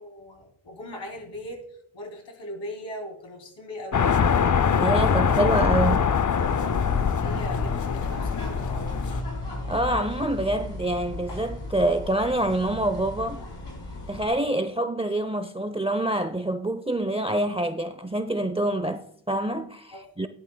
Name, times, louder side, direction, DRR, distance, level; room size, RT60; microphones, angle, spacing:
voice 1, 0.0-4.1 7.2-9.2 20.1-20.3, left 1 dB, 85° left, 3.0 m, -39 dB
sound 1, 3.9-9.2, left 6 dB, 45° left, 0.6 m, -23 dB
voice 2, 4.8-6.1 9.7-13.4 14.1-20.3, right 1 dB, 15° right, 0.6 m, -26 dB
sound 2, 6.4-14.3, left 1 dB, 70° left, 3.8 m, -35 dB
17.0 x 11.0 x 2.3 m
wide cardioid pair, 65°, 44 cm